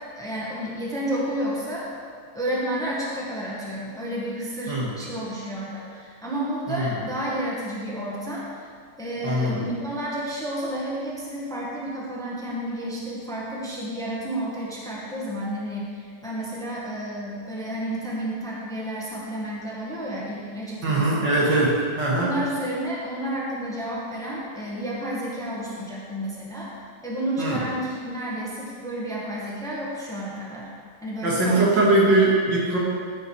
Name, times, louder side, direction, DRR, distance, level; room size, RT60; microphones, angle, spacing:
voice 1, 0.2-1.9 2.3-8.5 9.0-21.3 22.1-26.7 27.0-30.7 31.0-31.7 32.1-32.2, right 1 dB, ahead, -5 dB, 1.5 m, -31 dB
voice 2, 9.2-9.6 20.8-22.3 27.4-27.6 31.2-32.8, right 2 dB, 80° right, -5 dB, 2.8 m, -21 dB
14.0 x 5.8 x 4.7 m, 2.1 s
omnidirectional pair, 1.9 m